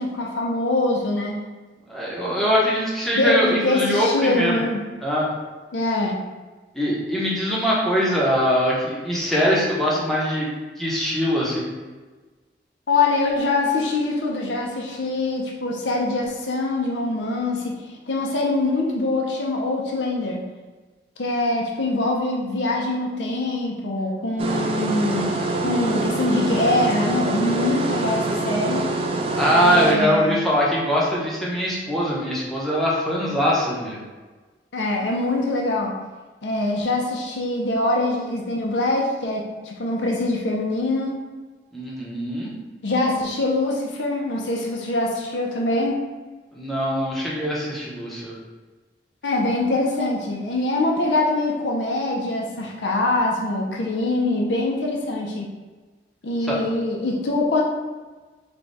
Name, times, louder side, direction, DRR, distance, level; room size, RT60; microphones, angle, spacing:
voice 1, 0.0-1.4 3.1-4.8 5.7-6.2 12.9-17.7 18.1-20.4 21.2-25.3 25.6-28.9 29.6-30.5 34.7-35.9 36.4-41.2 42.8-46.0 49.2-55.5 56.2-57.6, left 2 dB, 85° left, -2 dB, 0.6 m, -23 dB
voice 2, 1.9-4.6 5.0-5.3 6.7-10.5 10.8-11.7 29.3-34.0 41.7-42.5 46.5-48.3 56.5-56.6, equal, ahead, -6 dB, 0.8 m, -22 dB
sound 1, 24.4-29.9, right 2 dB, 30° right, 0.4 m, -25 dB
3.4 x 2.3 x 4.0 m, 1.3 s
head